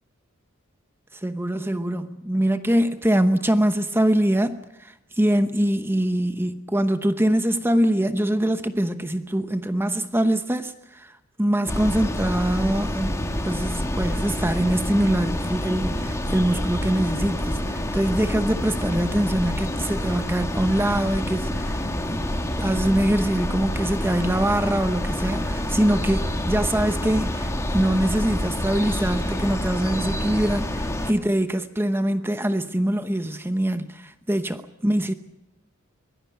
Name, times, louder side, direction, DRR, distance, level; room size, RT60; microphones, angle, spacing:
voice 1, 1.2-11.1 11.4-13.2 13.4-21.8 22.1-22.2 22.6-35.1, right 1 dB, 10° right, 0.9 m, -23 dB
sound 1, 11.7-31.1, left 1 dB, 15° left, 1.7 m, -27 dB
23.5 x 17.0 x 9.1 m
head